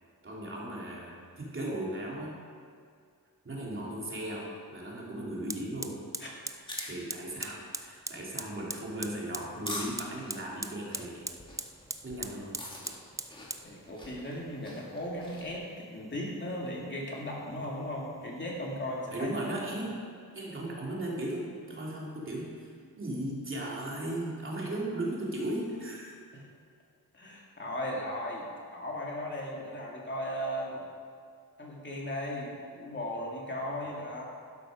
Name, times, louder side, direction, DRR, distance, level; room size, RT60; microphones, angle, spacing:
voice 1, 0.2-2.4 3.4-6.0 6.9-11.3 12.0-12.6 19.1-20.0 20.3-26.1, right 1 dB, 35° right, -4 dB, 3.1 m, -36 dB
Fire, 5.5-19.5, right 2 dB, 10° right, 0.5 m, -43 dB
sound 1, 6.6-15.5, left 1 dB, 15° left, 2.2 m, -46 dB
voice 2, 13.6-19.3 26.3-26.4 27.1-30.8 31.6-34.2, left 1 dB, 30° left, -3 dB, 2.3 m, -37 dB
12.0 x 11.5 x 5.1 m, 2.2 s
wide cardioid pair, 135°, 36 cm